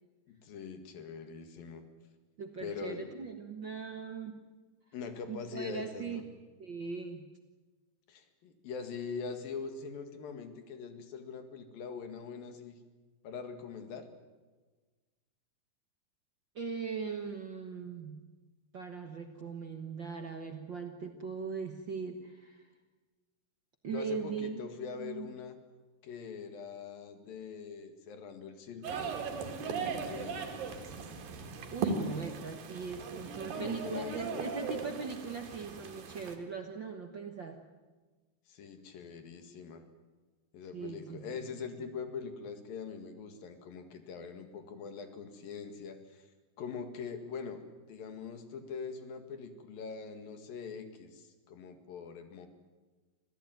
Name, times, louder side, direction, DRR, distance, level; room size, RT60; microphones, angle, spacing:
voice 1, 0.3-1.8 2.6-3.1 4.9-6.2 8.1-12.8 13.2-14.1 23.9-25.6 26.0-29.1 29.6-30.5 33.5-34.4 38.5-39.8 40.5-46.3 46.6-47.6 47.9-52.5, left 5 dB, 90° left, 7 dB, 3.8 m, -43 dB
voice 2, 2.4-4.4 5.3-6.2 6.6-7.3 16.5-18.3 18.7-22.6 23.8-24.7 25.0-25.3 31.7-37.6 40.7-41.3, right 5 dB, 55° right, 4 dB, 1.3 m, -40 dB
sound 1, 28.8-36.4, right 5 dB, 80° right, 3.9 m, -38 dB
26.5 x 16.0 x 9.3 m, 1.3 s
omnidirectional pair, 4.0 m